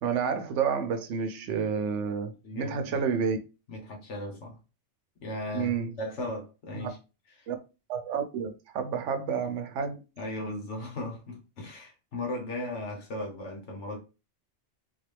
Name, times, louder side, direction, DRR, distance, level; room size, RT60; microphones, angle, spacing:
voice 1, 0.0-3.4 5.5-5.9 6.7-6.9 7.5-7.6 7.9-10.0, right 6 dB, 85° right, 1.0 m, -30 dB
voice 2, 2.4-3.0 3.7-4.6 5.2-7.0 10.2-14.0, left 1 dB, 75° left, 1.3 m, -37 dB
3.8 x 2.3 x 3.3 m
omnidirectional pair, 1.2 m